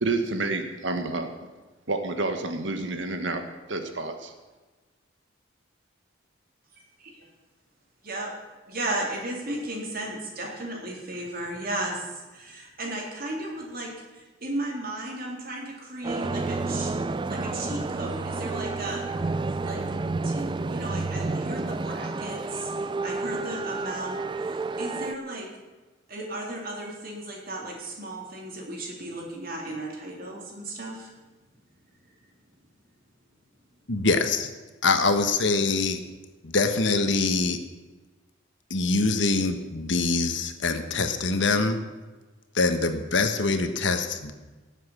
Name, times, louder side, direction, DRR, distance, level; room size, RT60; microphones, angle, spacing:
voice 1, 0.0-1.3 1.9-3.4 3.7-4.3, right 3 dB, 70° right, 6 dB, 1.5 m, -29 dB
voice 2, 8.7-20.0 20.2-25.5 26.1-31.1, right 1 dB, 50° right, -1 dB, 3.7 m, -35 dB
sound 1, 16.0-25.1, right 3 dB, 25° right, 0.4 m, -30 dB
voice 3, 33.9-34.5 34.8-36.0 36.4-37.6 38.7-41.8 42.5-44.3, left 3 dB, 70° left, 8 dB, 1.3 m, -24 dB
18.0 x 7.5 x 7.4 m, 1.2 s
head